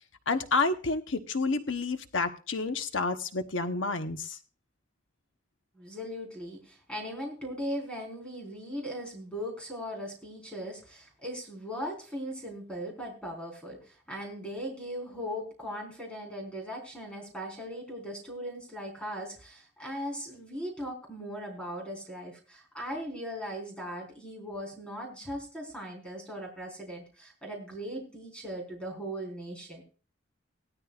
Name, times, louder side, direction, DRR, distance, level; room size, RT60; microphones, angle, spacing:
voice 1, 0.3-4.4, left 3 dB, 75° left, 8 dB, 1.0 m, -29 dB
voice 2, 5.7-29.8, equal, 5° left, 0 dB, 4.4 m, -39 dB
18.0 x 13.0 x 2.4 m, 0.37 s
head